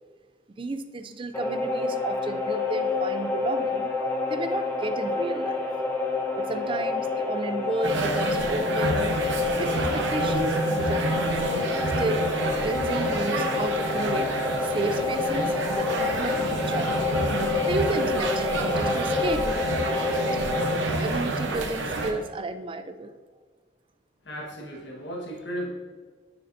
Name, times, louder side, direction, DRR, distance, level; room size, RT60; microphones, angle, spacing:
voice 1, 0.6-3.9 4.3-5.7 6.4-9.2 9.6-11.4 12.0-12.3 12.6-14.3 14.6-17.1 17.7-20.2 20.9-23.1, right 2 dB, 30° right, 10 dB, 0.4 m, -32 dB
sound 1, 1.3-20.7, left 3 dB, 15° left, 0.9 m, -28 dB
sound 2, 7.8-22.1, right 2 dB, 85° right, 0.9 m, -28 dB
voice 2, 24.2-25.7, equal, 75° left, -3 dB, 1.5 m, -35 dB
9.6 x 6.5 x 2.6 m, 1.5 s
head